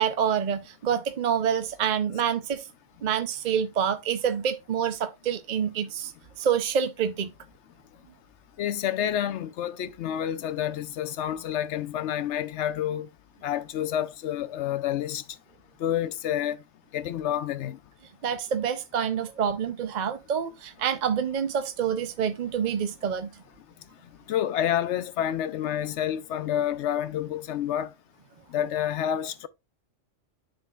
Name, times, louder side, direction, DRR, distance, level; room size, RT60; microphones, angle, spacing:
voice 1, 0.0-2.6 3.0-6.1 6.4-7.3 18.2-23.3, right 8 dB, 55° right, 0.5 m, -27 dB
voice 2, 8.6-13.1 13.4-15.2 15.8-16.6 16.9-17.8 24.3-27.9 28.5-29.5, left 10 dB, 70° left, 0.9 m, -28 dB
11.5 x 3.9 x 2.3 m
omnidirectional pair, 1.3 m